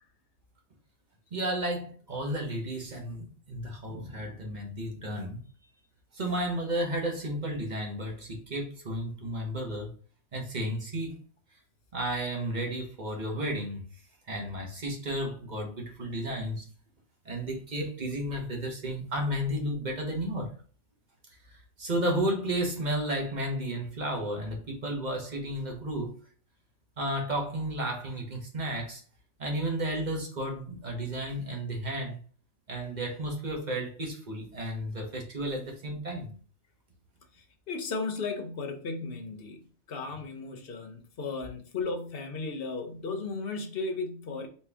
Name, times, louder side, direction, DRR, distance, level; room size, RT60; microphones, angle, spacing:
voice 1, 1.3-5.4 6.1-9.9 10.3-11.2 11.9-13.9 14.3-16.7 17.2-20.5 21.5-26.1 27.0-29.0 29.4-32.2 32.7-36.3, right 1 dB, 35° right, 1.2 m, -33 dB
voice 2, 37.3-44.5, left 3 dB, 50° left, 0.9 m, -35 dB
4.3 x 3.1 x 3.4 m
omnidirectional pair, 1.4 m